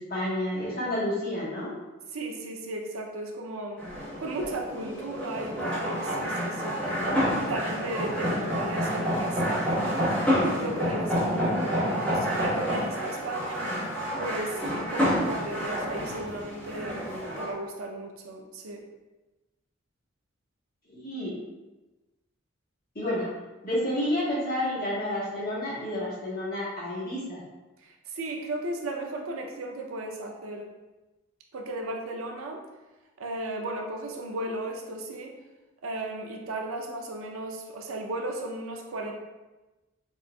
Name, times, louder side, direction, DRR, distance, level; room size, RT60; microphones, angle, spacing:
voice 1, 0.0-1.7 20.9-21.4 22.9-23.3 23.6-27.4, left 1 dB, 45° left, -8 dB, 1.3 m, -30 dB
voice 2, 2.1-3.9 4.2-6.9 7.4-10.0 10.6-13.8 14.2-18.8 27.8-30.7 31.5-32.6 33.2-35.4 35.8-39.1, right 2 dB, 85° right, 2 dB, 0.5 m, -35 dB
sound 1, 3.8-17.5, equal, 5° left, 1.0 m, -28 dB
4.3 x 2.4 x 2.2 m, 1.1 s
head